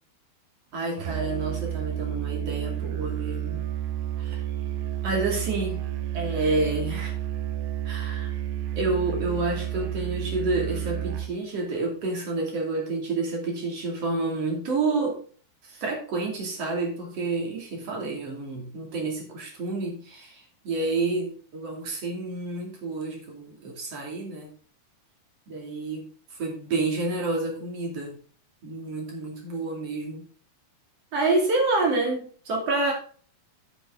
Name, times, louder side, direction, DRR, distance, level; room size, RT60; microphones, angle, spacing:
voice 1, 0.7-3.6 4.2-4.4 5.0-5.8 6.1-7.1 7.8-8.4 8.7-15.2 15.6-24.5 25.5-28.2 28.6-30.3 31.1-32.9, right 3 dB, 40° right, 0 dB, 3.3 m, -29 dB
Musical instrument, 1.0-11.4, right 11 dB, 90° right, 3.1 m, -31 dB
9.0 x 8.4 x 3.8 m, 0.43 s
omnidirectional pair, 4.7 m